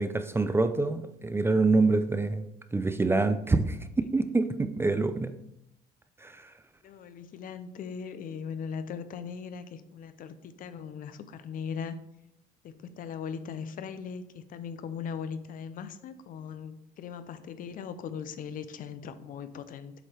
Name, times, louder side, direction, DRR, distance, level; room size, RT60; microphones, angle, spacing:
voice 1, 0.0-2.4 2.7-5.3 6.2-6.3, right 3 dB, 15° right, 10 dB, 0.4 m, -26 dB
voice 2, 6.8-12.0 12.6-19.9, left 6 dB, 55° left, 12 dB, 0.5 m, -39 dB
7.9 x 3.2 x 4.4 m, 0.81 s
cardioid pair, 110°, 17 cm